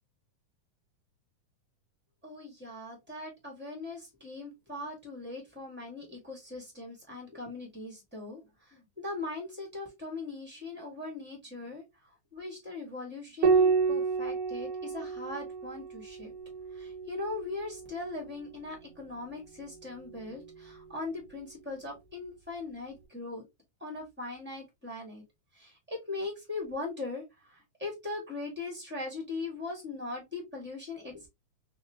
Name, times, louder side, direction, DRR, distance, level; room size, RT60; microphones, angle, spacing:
voice 1, 2.2-8.4 8.7-11.8 12.3-16.3 16.7-23.4 23.8-25.2 25.6-27.2 27.8-31.3, left 3 dB, 10° right, -1 dB, 0.5 m, -40 dB
Piano, 13.4-18.3 19.9-20.7, right 5 dB, 85° right, 2.3 m, -30 dB
5.4 x 2.3 x 2.7 m, 0.20 s
omnidirectional pair, 3.6 m